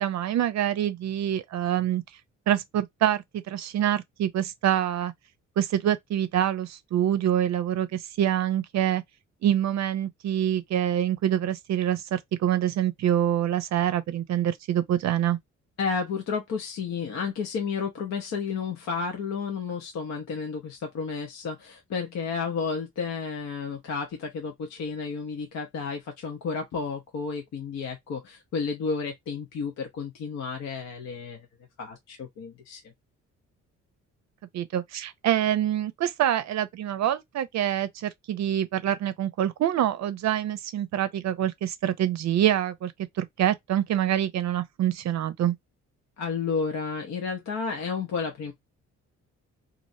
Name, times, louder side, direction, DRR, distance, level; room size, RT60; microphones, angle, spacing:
voice 1, 0.0-2.0 2.5-5.1 5.6-9.0 9.4-15.4 34.5-45.6, right 11 dB, 65° right, 0.5 m, -26 dB
voice 2, 15.8-31.5 31.8-32.8 46.2-48.5, left 5 dB, 65° left, 0.8 m, -32 dB
3.0 x 2.6 x 2.6 m
cardioid pair, 90°, 30 cm